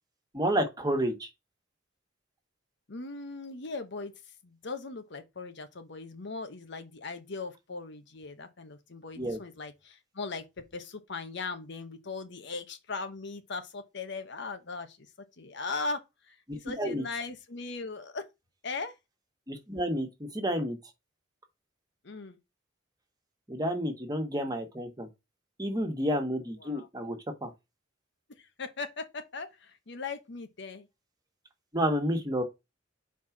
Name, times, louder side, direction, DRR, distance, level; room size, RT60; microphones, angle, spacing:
voice 1, 0.3-1.3 9.2-9.4 16.5-17.0 19.5-20.8 23.5-25.1 25.6-27.2 27.4-27.5 31.7-32.4, equal, 20° right, 1.5 m, -30 dB
voice 2, 2.9-4.1 4.4-10.4 10.7-15.1 15.4-16.0 16.3-18.2 18.6-18.9 22.0-22.4 26.6-26.9 28.4-30.9, left 3 dB, 65° left, 1.0 m, -39 dB
4.7 x 4.4 x 5.9 m
head